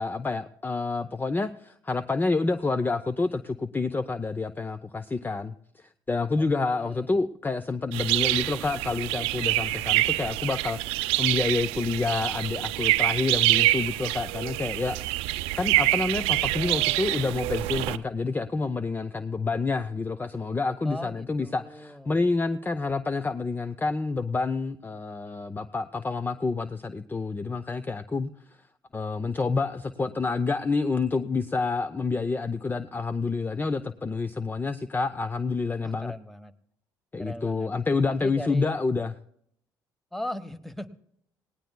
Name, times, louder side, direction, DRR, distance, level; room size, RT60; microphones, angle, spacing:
voice 1, 0.0-15.3 15.5-28.3 28.9-36.1 37.1-39.1, left 3 dB, 20° left, 13 dB, 0.6 m, -28 dB
voice 2, 6.4-7.1 20.8-22.1 35.8-36.5 37.2-37.7 38.1-38.8 40.1-40.9, left 1 dB, 5° left, 13 dB, 1.1 m, -39 dB
sound 1, 7.9-18.0, right 18 dB, 80° right, 0.5 m, -26 dB
19.0 x 17.5 x 2.2 m, 0.70 s
hypercardioid pair, 60°, 10 cm